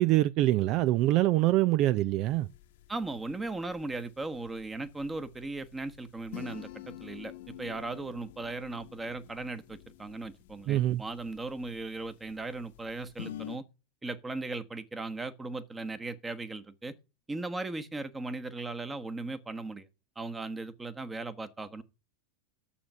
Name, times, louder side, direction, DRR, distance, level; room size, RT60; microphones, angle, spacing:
voice 1, 0.0-2.5 10.7-11.0, right 15 dB, 50° right, 0.4 m, -24 dB
sound 1, 2.2-13.6, left 13 dB, 70° left, 1.1 m, -49 dB
voice 2, 2.9-7.3 7.6-13.6 14.0-16.9 17.3-19.9 20.2-21.8, right 2 dB, 15° right, 1.2 m, -37 dB
8.6 x 7.0 x 6.6 m
hypercardioid pair, 95°, 0 cm